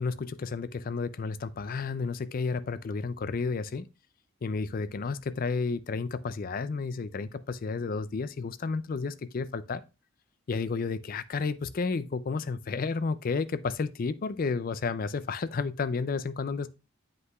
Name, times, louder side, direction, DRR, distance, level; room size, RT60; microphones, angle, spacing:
voice 1, 0.0-3.9 4.4-9.8 10.5-16.7, left 4 dB, 40° left, 0.4 m, -31 dB
7.8 x 5.5 x 2.3 m
head